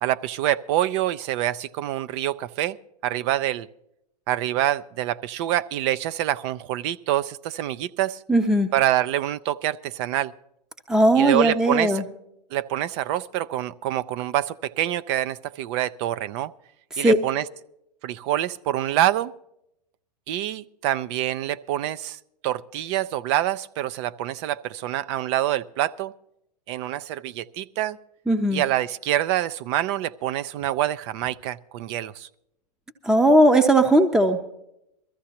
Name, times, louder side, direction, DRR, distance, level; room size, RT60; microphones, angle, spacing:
voice 1, 0.0-2.8 3.0-3.7 4.3-8.2 8.7-10.3 11.1-12.0 12.5-16.5 17.0-17.4 18.0-19.3 20.3-26.1 26.7-28.0 28.5-32.3, right 13 dB, 45° right, 0.5 m, -26 dB
voice 2, 8.3-8.7 10.9-12.0 16.9-17.2 28.3-28.6 33.0-34.6, right 1 dB, 5° right, 0.7 m, -18 dB
22.0 x 14.0 x 2.9 m
hypercardioid pair, 105°, 21 cm